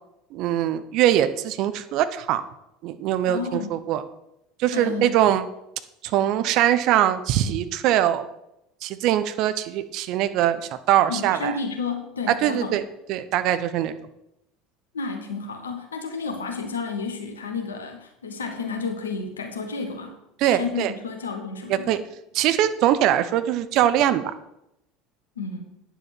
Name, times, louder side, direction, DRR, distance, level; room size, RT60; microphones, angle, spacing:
voice 1, 0.3-2.4 2.8-4.0 4.6-5.5 6.1-8.3 8.8-10.6 10.9-11.6 12.4-12.8 13.1-13.9 20.4-20.9 21.7-22.0 22.3-24.2, right 11 dB, 50° right, 11 dB, 0.7 m, -22 dB
voice 2, 3.2-3.8 4.7-5.2 11.1-12.8 14.9-20.1 20.6-22.0 25.4-25.8, left 4 dB, 75° left, 4 dB, 1.2 m, -31 dB
9.6 x 7.2 x 6.0 m, 0.85 s
figure-of-eight pair, 70°, 0 cm